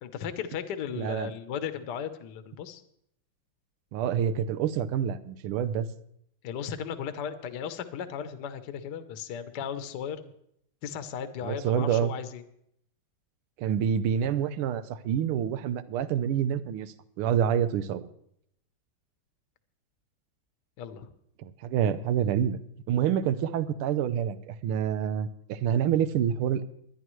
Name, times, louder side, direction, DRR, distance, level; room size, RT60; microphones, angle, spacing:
voice 1, 0.0-2.8 6.4-10.2 10.8-12.4 20.8-21.1, left 8 dB, 60° left, 9 dB, 1.3 m, -36 dB
voice 2, 1.0-1.3 3.9-5.9 11.4-12.1 13.6-18.1 21.4-22.6 22.9-26.6, right 9 dB, 80° right, 13 dB, 1.6 m, -27 dB
22.0 x 10.5 x 3.1 m, 0.72 s
omnidirectional pair, 2.4 m